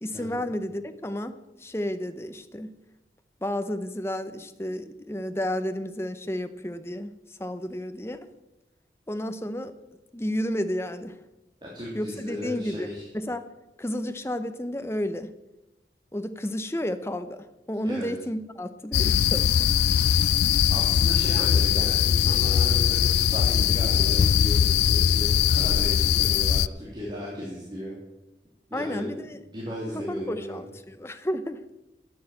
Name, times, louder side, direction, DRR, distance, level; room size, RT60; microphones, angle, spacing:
voice 1, 0.0-2.7 3.4-8.3 9.1-9.7 10.1-11.2 11.9-13.4 13.8-15.3 16.1-19.7 28.7-29.4 29.9-31.7, left 1 dB, 15° left, 9 dB, 0.8 m, -32 dB
voice 2, 11.6-13.0 17.8-18.1 20.7-27.9 28.7-30.7, left 1 dB, 25° right, -5 dB, 3.0 m, -36 dB
sound 1, 18.9-26.7, left 9 dB, 70° left, 0.3 m, -21 dB
11.5 x 9.2 x 7.8 m, 1.0 s
head